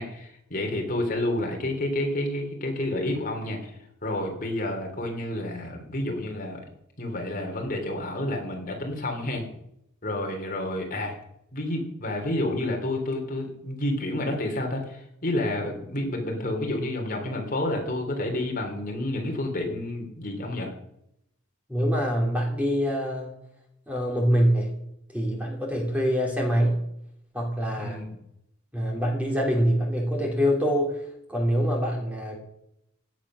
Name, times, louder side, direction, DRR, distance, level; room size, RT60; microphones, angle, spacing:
voice 1, 0.0-6.6 7.0-9.5 10.0-11.1 11.5-20.7 27.8-28.2, left 1 dB, 40° left, 2 dB, 3.3 m, -30 dB
voice 2, 21.7-23.3 23.9-24.7 25.1-26.8 27.3-28.0 28.7-32.4, equal, 5° right, 0 dB, 3.1 m, -25 dB
17.0 x 10.5 x 6.3 m, 0.77 s
head